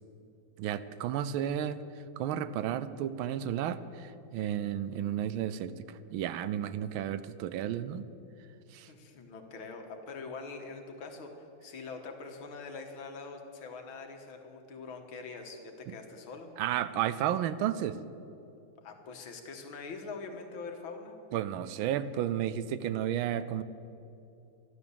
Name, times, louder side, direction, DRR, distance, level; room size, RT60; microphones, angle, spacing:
voice 1, 0.6-1.8 2.2-8.1 8.7-8.9 15.9-16.0 16.6-18.0 21.3-23.6, right 10 dB, 85° right, 14 dB, 1.4 m, -32 dB
voice 2, 8.9-16.5 18.8-21.2, left 4 dB, 80° left, 4 dB, 2.1 m, -44 dB
13.0 x 11.5 x 6.9 m, 2.7 s
omnidirectional pair, 2.2 m